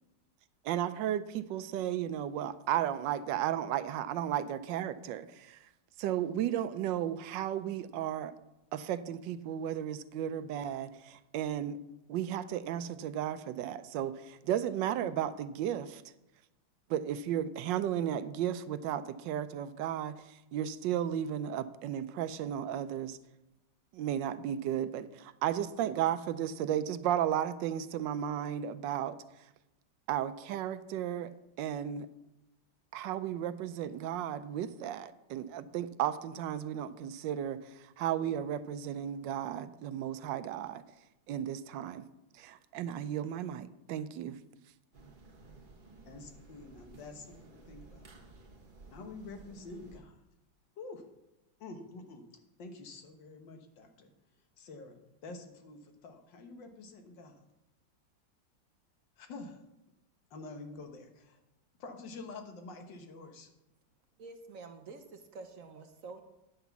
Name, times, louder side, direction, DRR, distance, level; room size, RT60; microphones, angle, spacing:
voice 1, 0.6-5.6 6.0-8.3 8.7-11.8 12.1-16.0 16.9-23.2 23.9-29.2 30.1-31.3 31.6-32.1 32.9-40.8 41.3-42.0 42.4-44.4, right 10 dB, 80° right, 13 dB, 1.2 m, -34 dB
sound 1, 44.9-50.0, right 3 dB, 30° right, 1.3 m, -55 dB
voice 2, 46.1-48.0 48.9-50.2 50.8-51.0 51.6-52.2 52.6-54.1 54.6-55.0 55.2-57.4 59.2-59.6 60.3-61.4 61.8-63.5, left 3 dB, 80° left, 5 dB, 1.9 m, -47 dB
voice 3, 64.2-66.2, right 4 dB, 55° right, 7 dB, 1.0 m, -48 dB
9.6 x 6.0 x 7.0 m, 0.94 s
omnidirectional pair, 2.0 m